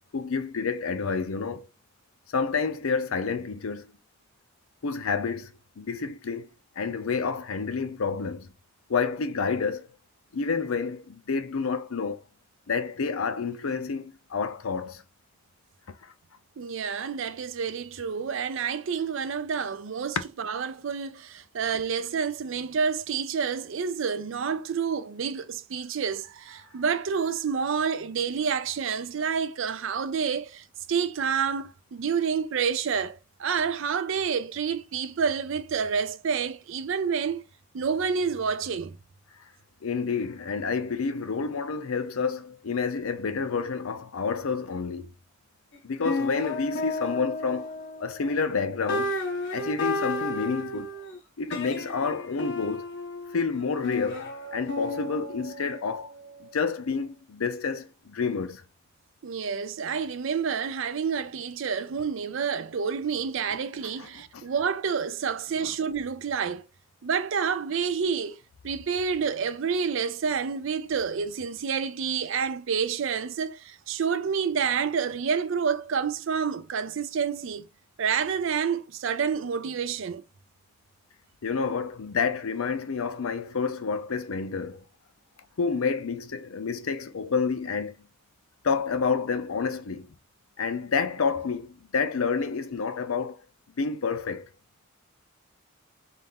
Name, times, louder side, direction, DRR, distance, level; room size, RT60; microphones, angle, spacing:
voice 1, 0.1-1.7 2.3-3.9 4.8-6.5 6.8-8.5 8.9-9.9 10.3-12.2 12.7-15.0 16.0-16.1 39.8-45.1 45.8-47.7 48.0-49.1 49.5-50.9 51.4-52.8 53.3-54.3 54.5-56.1 56.5-58.6 64.0-64.1 64.3-64.4 65.6-65.7 81.4-84.8 85.6-87.9 88.6-90.1 90.6-93.4 93.8-94.5, left 5 dB, 75° left, 0.5 m, -29 dB
voice 2, 16.6-37.5 37.7-39.0 59.2-66.6 67.0-68.4 68.6-77.6 78.0-80.2, right 6 dB, 60° right, 0.4 m, -28 dB
sound 1, 45.7-45.8 46.0-48.4 48.9-51.2 51.5-56.7, left 2 dB, 55° left, 1.0 m, -33 dB
4.1 x 2.4 x 3.6 m
head